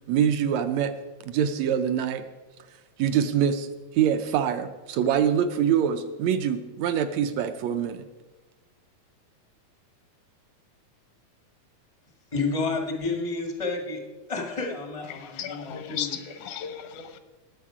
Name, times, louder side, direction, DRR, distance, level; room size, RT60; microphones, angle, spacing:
voice 1, 0.1-0.9 1.2-2.2 3.0-8.0, right 8 dB, 75° right, 8 dB, 1.8 m, -24 dB
voice 2, 12.3-16.2, left 3 dB, 40° left, 2 dB, 0.4 m, -30 dB
voice 3, 15.1-17.2, left 8 dB, 80° left, 10 dB, 2.4 m, -35 dB
18.5 x 7.8 x 4.8 m, 1.2 s
omnidirectional pair, 3.4 m